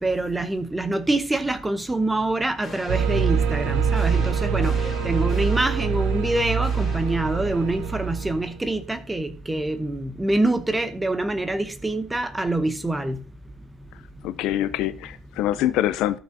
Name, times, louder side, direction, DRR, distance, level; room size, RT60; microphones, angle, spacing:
voice 1, 0.0-4.8 5.0-13.2, right 2 dB, 10° right, 0.8 m, -25 dB
sound 1, 2.6-8.0, left 5 dB, 30° left, 1.9 m, -42 dB
sound 2, 2.9-8.6, right 6 dB, 80° right, 0.8 m, -24 dB
voice 2, 14.2-16.2, left 13 dB, 85° left, 0.6 m, -24 dB
13.5 x 6.0 x 2.7 m
cardioid pair, 155°, 0 cm